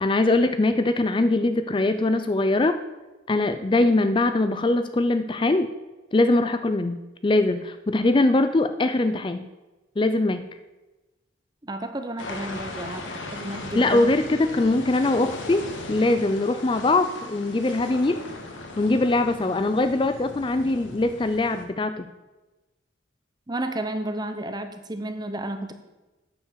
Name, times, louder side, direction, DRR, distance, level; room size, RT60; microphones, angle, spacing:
voice 1, 0.0-2.8 3.3-5.7 6.1-7.0 7.2-9.5 10.0-10.4 13.7-18.3 18.8-22.0, left 2 dB, 25° left, 10 dB, 0.4 m, -22 dB
voice 2, 11.6-14.2 23.5-25.7, right 1 dB, 20° right, 8 dB, 0.8 m, -32 dB
sound 1, 12.2-21.6, left 2 dB, 90° left, 1.6 m, -38 dB
8.7 x 6.9 x 6.7 m, 1.1 s
head